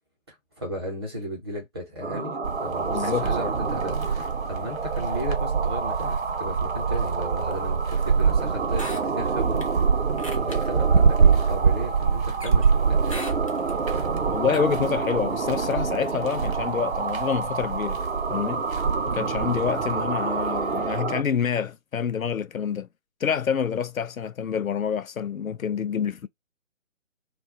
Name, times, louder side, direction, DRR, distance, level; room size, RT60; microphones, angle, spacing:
voice 1, 0.3-9.7 10.0-10.1 10.3-13.2 19.4-19.7, equal, 20° right, 0.7 m, -35 dB
sound 1, 2.0-21.2, right 4 dB, 55° right, 0.7 m, -29 dB
sound 2, 2.4-21.0, right 6 dB, 85° right, 0.9 m, -26 dB
voice 2, 2.9-3.3 14.3-18.0 18.3-18.7 19.0-22.9 23.2-26.3, left 7 dB, 90° left, 0.5 m, -27 dB
sound 3, 8.7-9.7 10.2-10.6 11.0-11.1 12.4-12.7 13.1-13.8 14.5-14.6, left 1 dB, 25° left, 0.4 m, -38 dB
2.3 x 2.2 x 3.5 m
figure-of-eight pair, 140°, 40 cm